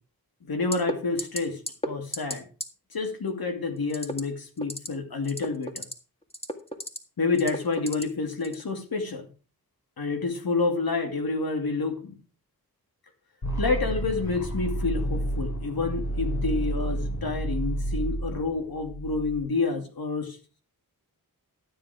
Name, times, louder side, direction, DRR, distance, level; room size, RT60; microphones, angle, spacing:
voice 1, 0.4-2.4 2.9-5.8 7.2-9.3 10.0-12.1 13.6-20.4, left 3 dB, 75° left, 5 dB, 2.5 m, -29 dB
sound 1, 0.7-0.9 1.2-1.4 1.7-2.3 2.6-2.7 3.9-4.2 4.6-4.9 5.2-5.9 6.3-7.0 7.4-8.0 8.4-8.6, equal, 15° left, 1.9 m, -32 dB
sound 2, 13.4-19.4, right 1 dB, 50° left, 5.0 m, -30 dB
12.5 x 7.7 x 4.9 m, 0.36 s
cardioid pair, 55°, 37 cm